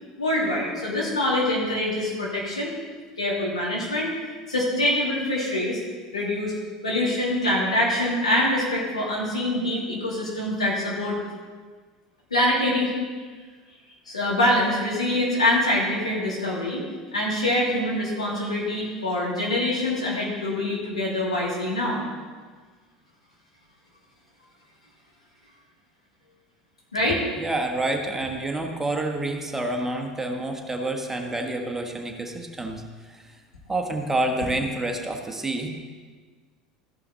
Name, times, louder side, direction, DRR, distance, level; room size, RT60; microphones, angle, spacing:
voice 1, 0.2-2.7 3.2-4.1 4.5-5.8 6.1-6.5 6.8-11.2 12.3-12.9 14.1-16.9 17.1-22.0 26.9-27.2, left 1 dB, 90° left, -4 dB, 2.3 m, -24 dB
voice 2, 27.4-33.4 33.7-35.7, right 2 dB, 10° right, 3 dB, 1.3 m, -28 dB
14.0 x 5.6 x 4.2 m, 1.5 s
figure-of-eight pair, 75°, 3 cm